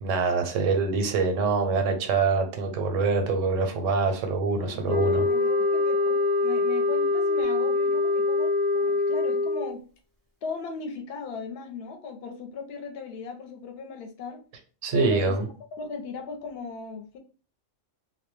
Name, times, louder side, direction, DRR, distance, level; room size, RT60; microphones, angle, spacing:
voice 1, 0.0-5.3 14.8-15.4, right 4 dB, 90° right, 6 dB, 0.9 m, -25 dB
voice 2, 4.6-9.8 10.4-14.4 14.9-15.5 15.8-17.2, left 4 dB, 65° left, 5 dB, 0.7 m, -37 dB
Guitar, 4.6-8.1, right 2 dB, 30° right, 0.4 m, -43 dB
sound 1, 4.9-9.8, left 3 dB, 30° left, 0.4 m, -24 dB
2.2 x 2.1 x 3.0 m, 0.39 s
omnidirectional pair, 1.3 m